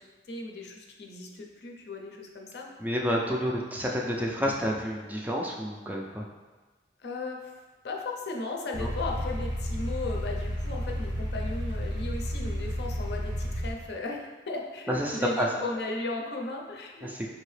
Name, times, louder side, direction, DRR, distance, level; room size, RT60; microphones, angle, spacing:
voice 1, 0.3-2.7 7.0-7.5 7.8-17.3, left 3 dB, 65° left, 0 dB, 0.5 m, -36 dB
voice 2, 2.8-6.3 8.8-8.9 14.9-15.5 17.0-17.3, equal, 10° right, -2 dB, 0.3 m, -29 dB
sound 1, 8.7-13.7, equal, 80° right, 0.8 m, -32 dB
4.7 x 2.7 x 3.2 m, 1.3 s
head